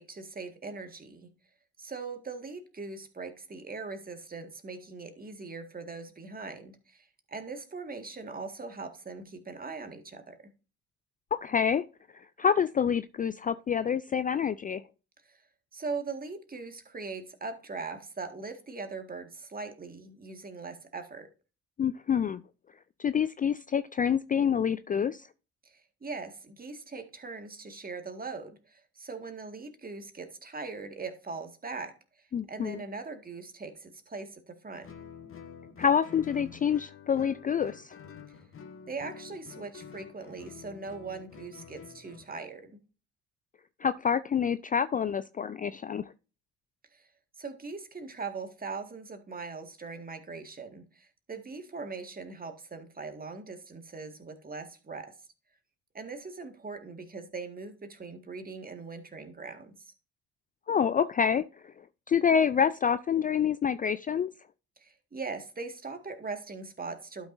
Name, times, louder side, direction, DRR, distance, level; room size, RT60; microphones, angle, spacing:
voice 1, 0.0-1.3 1.8-10.4 15.2-15.4 15.7-21.3 25.7-32.0 32.5-34.9 38.9-42.8 46.9-47.1 47.4-55.2 55.9-59.8 64.8-67.3, right 4 dB, 25° right, 1.8 m, -40 dB
voice 2, 11.3-11.8 12.1-14.8 21.8-22.4 23.0-25.3 32.3-32.8 35.8-37.9 43.8-46.0 60.7-61.4 62.1-64.3, left 7 dB, 25° left, 0.4 m, -27 dB
Guitar, 34.8-42.3, left 6 dB, 40° left, 1.5 m, -48 dB
12.0 x 5.8 x 2.6 m
hypercardioid pair, 55°, 32 cm